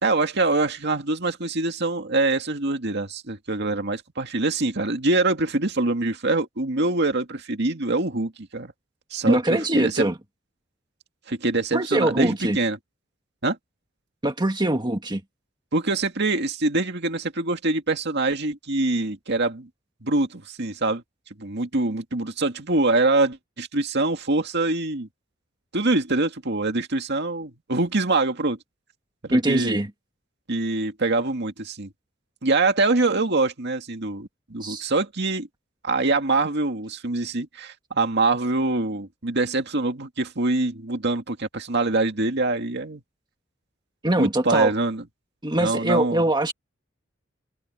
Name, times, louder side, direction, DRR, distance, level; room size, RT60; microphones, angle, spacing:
voice 1, 0.0-8.7 9.1-10.1 11.3-12.8 13.4-13.6 15.7-19.7 20.0-21.0 21.4-25.1 25.7-28.6 29.2-29.7 30.5-31.9 32.4-35.5 35.8-43.0 44.2-45.0 45.5-46.2, right 2 dB, 60° right, 2.2 m, -24 dB
voice 2, 9.3-10.2 11.7-12.6 14.2-15.2 29.3-29.9 34.6-34.9 44.0-44.7 45.4-46.5, right 1 dB, 25° right, 1.7 m, -22 dB
head